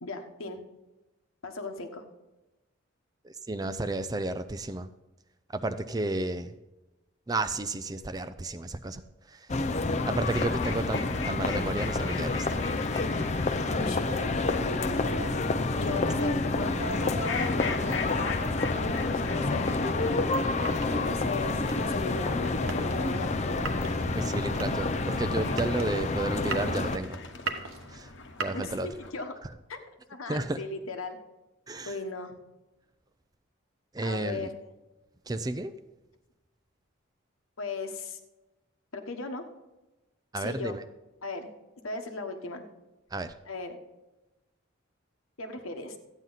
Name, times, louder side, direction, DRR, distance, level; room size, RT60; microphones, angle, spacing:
voice 1, 0.0-0.6 1.4-2.0 13.7-15.3 15.8-20.4 20.9-23.9 28.5-29.4 29.7-29.8 30.1-31.2 31.9-32.4 34.0-34.5 37.6-38.2 38.9-39.4 40.4-40.7 41.2-41.5 41.8-42.6 43.5-43.8 45.4-46.0, left 3 dB, 90° left, 5 dB, 1.2 m, -37 dB
voice 2, 3.2-4.9 5.5-6.5 7.3-9.0 9.3-9.5 10.1-12.6 24.2-27.2 27.9-28.1 28.4-28.9 29.4-29.5 30.3-30.6 31.7-32.0 33.9-34.5 35.3-35.7 40.3-40.8 43.1-43.3, right 2 dB, 20° right, 10 dB, 0.4 m, -32 dB
sound 1, 9.5-27.0, left 3 dB, 35° left, 0.5 m, -29 dB
sound 2, 10.2-29.1, left 5 dB, 65° left, 1.1 m, -42 dB
sound 3, 19.6-29.2, right 3 dB, 80° right, 1.1 m, -40 dB
13.5 x 9.1 x 4.0 m, 1.0 s
head